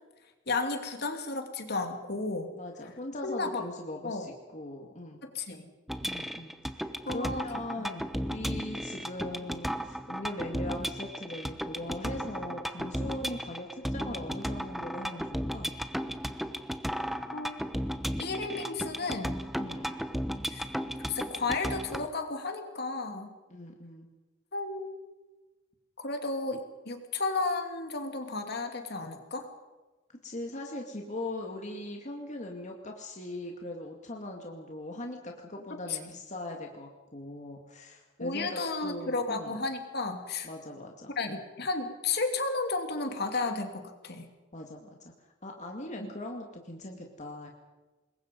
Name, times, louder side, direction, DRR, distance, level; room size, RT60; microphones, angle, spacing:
voice 1, 0.5-2.5 3.2-3.6 4.0-4.3 5.2-5.7 7.0-7.5 7.8-8.0 17.3-17.8 18.2-19.5 20.5-20.7 21.1-23.3 24.5-24.9 26.0-29.5 35.7-36.1 38.2-40.5 41.2-44.3 46.0-46.1, left 3 dB, 55° left, 5 dB, 2.8 m, -33 dB
voice 2, 2.6-5.2 6.0-15.7 19.6-19.9 23.5-24.1 30.1-39.6 40.4-41.1 44.5-45.0 45.4-47.5, left 1 dB, 40° left, 1 dB, 2.2 m, -40 dB
sound 1, 5.9-22.1, equal, ahead, 1.0 m, -35 dB
27.0 x 22.0 x 5.4 m, 1.2 s
head